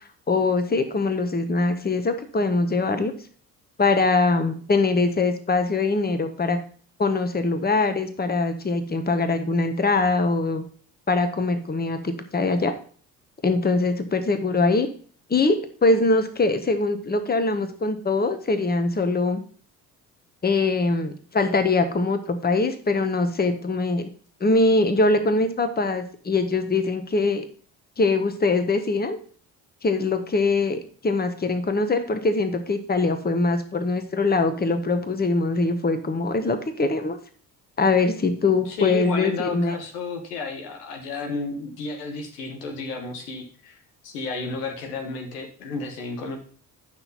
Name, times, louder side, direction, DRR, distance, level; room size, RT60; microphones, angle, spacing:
voice 1, 0.3-3.1 3.8-6.6 7.0-10.6 11.1-12.7 13.4-14.9 15.3-19.4 20.4-24.1 24.4-27.4 28.0-29.2 29.8-37.2 37.8-39.8, left 3 dB, 20° left, 9 dB, 1.2 m, -22 dB
voice 2, 38.6-46.4, left 3 dB, 85° left, 4 dB, 1.4 m, -32 dB
9.9 x 5.8 x 4.1 m, 0.43 s
hypercardioid pair, 50°, 45 cm